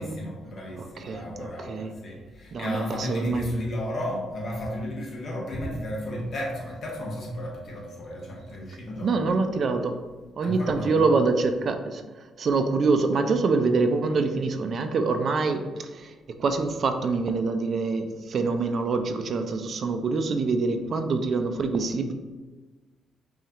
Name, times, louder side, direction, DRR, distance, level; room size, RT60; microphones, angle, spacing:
voice 1, 0.0-9.2 10.4-11.1, equal, 55° left, -2 dB, 1.2 m, -33 dB
voice 2, 0.8-1.9 2.5-3.5 9.0-10.0 10.4-12.0 12.4-16.1 16.4-22.1, right 4 dB, 55° right, 7 dB, 0.4 m, -25 dB
5.5 x 2.4 x 2.9 m, 1.3 s
cardioid pair, 90°, 0 cm